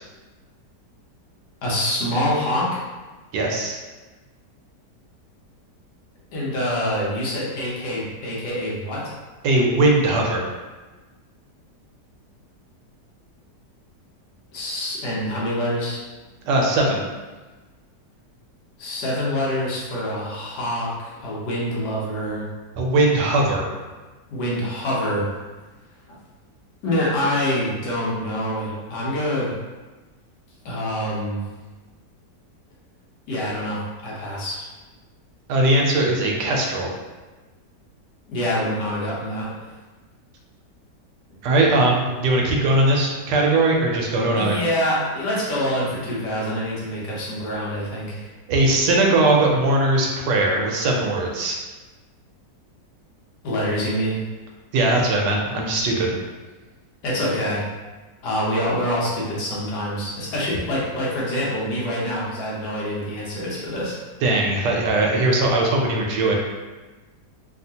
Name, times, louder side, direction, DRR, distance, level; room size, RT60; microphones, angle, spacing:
voice 1, 1.6-2.8 6.3-9.1 14.5-16.0 18.8-22.4 24.3-25.3 26.8-29.5 30.6-31.4 33.3-34.6 38.3-39.5 44.3-48.3 53.4-54.2 57.0-57.6 58.2-63.9, equal, 75° left, -6 dB, 1.5 m, -25 dB
voice 2, 3.3-3.8 9.4-10.5 16.4-17.0 22.8-23.7 35.5-36.9 41.4-44.6 48.5-51.6 54.7-56.1 64.2-66.4, right 2 dB, 80° right, 0 dB, 1.2 m, -20 dB
3.4 x 2.4 x 2.7 m, 1.2 s
omnidirectional pair, 1.9 m